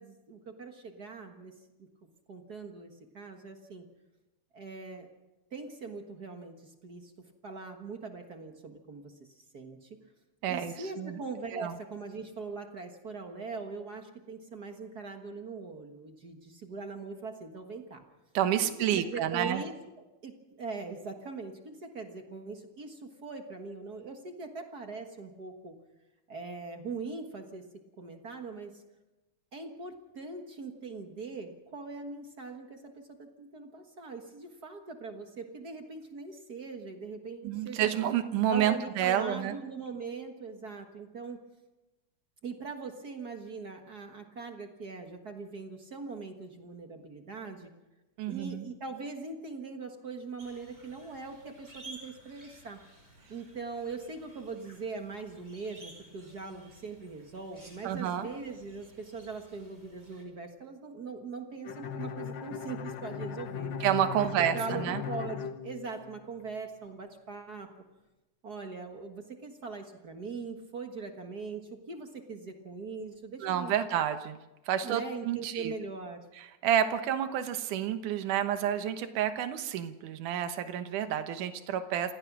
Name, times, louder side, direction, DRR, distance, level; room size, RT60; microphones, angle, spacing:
voice 1, 0.0-1.5 1.8-3.8 4.5-5.1 5.5-7.1 7.4-9.1 9.5-9.9 10.5-18.0 18.6-19.7 20.2-25.7 26.3-27.6 28.0-28.8 29.5-37.9 38.5-41.4 42.4-47.7 48.3-52.8 53.3-63.7 64.1-67.7 68.4-73.9 74.8-76.2, right 4 dB, 40° right, 4 dB, 1.5 m, -41 dB
voice 2, 10.4-11.2 11.5-11.7 18.3-19.6 37.4-39.6 48.2-48.6 57.8-58.3 63.8-65.0 73.4-74.4 74.7-75.7 76.6-82.1, right 10 dB, 85° right, 9 dB, 2.7 m, -29 dB
sound 1, 50.4-60.2, right 1 dB, 20° right, 5.4 m, -54 dB
Bowed string instrument, 61.6-66.5, left 7 dB, 80° left, 1.0 m, -38 dB
28.5 x 16.0 x 6.1 m, 1.1 s
omnidirectional pair, 3.5 m